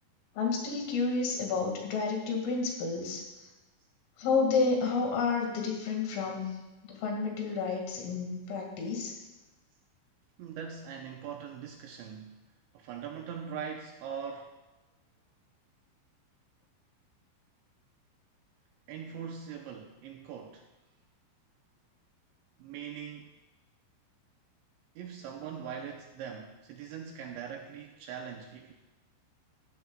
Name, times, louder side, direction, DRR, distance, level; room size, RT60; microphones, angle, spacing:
voice 1, 0.4-3.2 4.2-6.5 6.8-9.1, left 4 dB, 75° left, 1 dB, 4.7 m, -30 dB
voice 2, 10.4-12.4 12.7-14.5 18.9-20.7 22.6-23.3 25.0-28.7, right 7 dB, 80° right, 2 dB, 2.7 m, -41 dB
15.5 x 14.5 x 2.4 m, 1.1 s
omnidirectional pair, 5.9 m